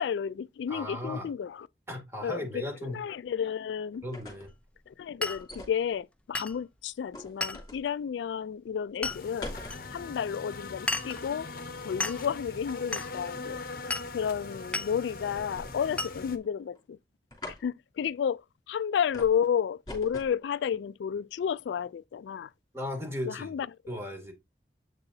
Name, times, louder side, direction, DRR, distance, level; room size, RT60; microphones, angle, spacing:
voice 1, 0.0-1.7 2.2-4.0 4.9-9.6 9.9-11.5 11.8-13.6 14.1-17.0 17.6-22.5 23.3-24.0, left 7 dB, 85° left, 0.3 m, -32 dB
voice 2, 0.7-1.3 1.9-3.0 4.0-4.5 22.7-23.5 23.9-24.3, left 1 dB, 15° right, 2.4 m, -36 dB
sound 1, 3.9-4.6 5.4-5.8 7.1-7.9 9.0-9.8 15.4-16.0 16.3-16.8 17.3-17.6 19.1-19.4 19.9-20.4, left 1 dB, 20° left, 2.9 m, -43 dB
Glass, 5.2-5.4 6.3-6.6 7.4-7.7 9.0-9.2 9.7-9.8 10.9-11.2 12.0-12.2 12.9-13.1 13.9-14.1 14.7-14.9 16.0-16.2, left 2 dB, 5° left, 0.5 m, -32 dB
sound 2, 9.1-16.4, left 3 dB, 50° left, 0.9 m, -41 dB
8.1 x 6.7 x 2.7 m
head